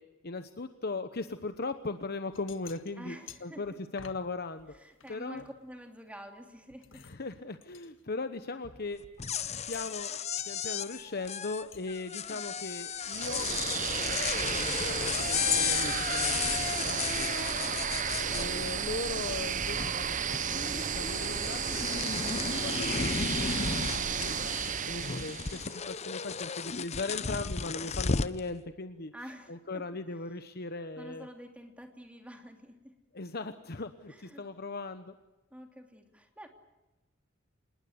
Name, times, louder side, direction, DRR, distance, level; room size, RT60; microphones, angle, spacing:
voice 1, 0.2-3.1 3.4-4.7 5.1-5.4 6.9-9.3 9.7-10.1 10.5-17.3 18.3-21.6 22.6-29.1 29.5-31.3 33.1-35.1, left 3 dB, 50° left, 9 dB, 1.1 m, -39 dB
sound 1, 1.5-1.7 2.1-4.3 4.6-6.1 6.5-9.3 9.7-10.1 10.4-10.5 11.7-11.8, left 7 dB, 70° left, 1.6 m, -53 dB
voice 2, 3.0-3.8 4.7-7.0 12.3-12.7 29.1-29.8 30.1-30.2 31.0-32.9 34.1-34.4 35.5-36.5, equal, 5° right, 4 dB, 3.0 m, -49 dB
sound 2, 9.0-19.1 19.4-20.1 20.3-28.4, left 6 dB, 35° left, 0.7 m, -34 dB
sound 3, 13.0-25.8, right 7 dB, 40° right, 0.8 m, -33 dB
26.5 x 20.5 x 8.1 m, 1.1 s
head